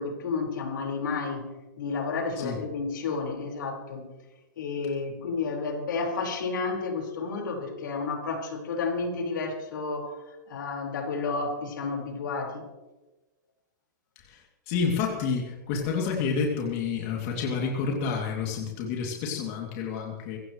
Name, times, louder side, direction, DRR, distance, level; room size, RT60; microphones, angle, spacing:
voice 1, 0.0-1.5 1.8-4.0 4.6-12.7, left 4 dB, 75° left, 1 dB, 4.9 m, -31 dB
voice 2, 14.2-20.4, left 5 dB, 40° left, 0 dB, 2.7 m, -29 dB
24.0 x 16.0 x 3.2 m, 1.1 s
hypercardioid pair, 155°, 11 cm